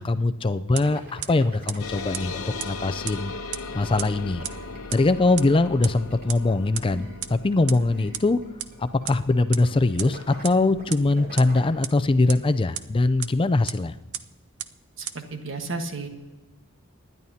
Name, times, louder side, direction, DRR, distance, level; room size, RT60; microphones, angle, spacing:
voice 1, 0.0-3.3 3.7-4.4 4.9-8.4 8.8-13.9, left 2 dB, 25° left, 12 dB, 0.4 m, -22 dB
sound 1, 0.8-2.5 3.7-9.3 9.6-11.8, equal, 45° right, 3.0 m, -44 dB
sound 2, 0.8-0.9 1.2-1.3 1.7-1.8 2.1-2.2 2.6-2.7 3.1-3.2 3.5-3.6 4.0-4.1 4.4-4.5 4.9-5.0 5.4-5.5 5.8-5.9 6.3-6.4 6.8-6.9 7.2-7.3 7.7-7.8 8.1-8.2 8.6-8.7 9.1-9.2 9.5-9.6 10.0-10.1 10.4-10.5 10.9-11.0 11.4-11.5 11.8-11.9 12.3-12.4 12.8-12.9 13.2-13.3 13.7-13.8 14.1-14.2 14.6-14.7 15.1-15.2, right 12 dB, 85° right, 0.6 m, -30 dB
sound 3, 1.8-12.7, left 4 dB, 90° left, 1.0 m, -39 dB
voice 2, 15.0-16.1, right 3 dB, 60° right, 5 dB, 1.5 m, -33 dB
25.5 x 10.5 x 2.8 m, 1.1 s
head